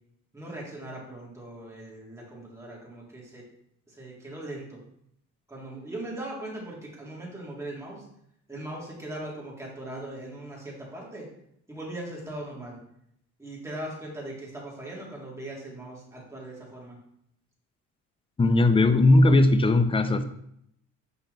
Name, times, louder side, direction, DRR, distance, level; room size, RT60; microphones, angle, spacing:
voice 1, 0.3-3.4 3.9-4.8 5.5-8.1 8.5-11.3 11.7-12.8 13.4-17.0, right 1 dB, 10° right, -4 dB, 2.4 m, -39 dB
voice 2, 18.4-20.2, left 2 dB, 15° left, 9 dB, 0.5 m, -19 dB
5.7 x 4.4 x 3.9 m, 0.74 s
cardioid pair, 90°, 34 cm